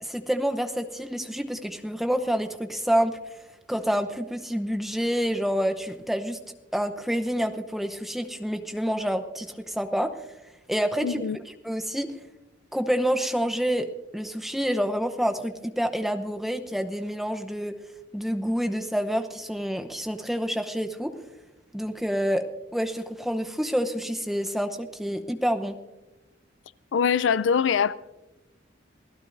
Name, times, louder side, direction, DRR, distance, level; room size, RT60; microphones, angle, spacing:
voice 1, 0.0-3.2 3.7-6.4 6.7-10.1 10.7-11.2 11.6-12.1 12.7-13.9 14.1-17.8 18.1-21.1 21.7-22.4 22.7-25.8, equal, ahead, 0.8 m, -27 dB
voice 2, 11.0-11.4 26.9-27.9, left 7 dB, 80° left, 0.4 m, -23 dB
27.5 x 16.5 x 2.6 m
head